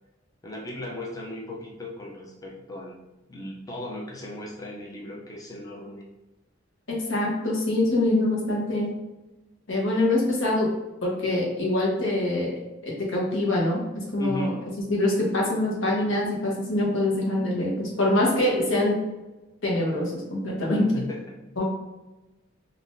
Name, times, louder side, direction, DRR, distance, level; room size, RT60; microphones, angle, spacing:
voice 1, 0.4-3.0 3.3-6.1 14.2-14.6 20.7-21.4, left 1 dB, 20° left, -2 dB, 0.4 m, -37 dB
voice 2, 6.9-8.9 9.7-10.7 11.0-12.5 12.8-14.5 14.9-18.9 19.6-20.9 21.6-21.7, left 1 dB, 65° left, -3 dB, 1.0 m, -24 dB
3.6 x 2.5 x 2.5 m, 1.0 s
head